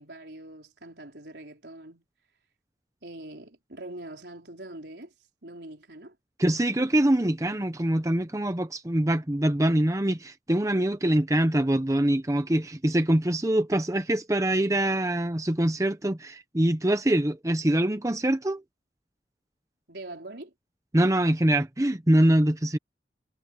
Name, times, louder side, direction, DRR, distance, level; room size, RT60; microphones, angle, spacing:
voice 1, 0.0-2.1 3.0-5.1 5.4-6.2 19.9-20.5, right 1 dB, 75° right, 4.0 m, -43 dB
voice 2, 6.4-18.6 20.9-22.8, right 1 dB, 20° right, 0.8 m, -24 dB
head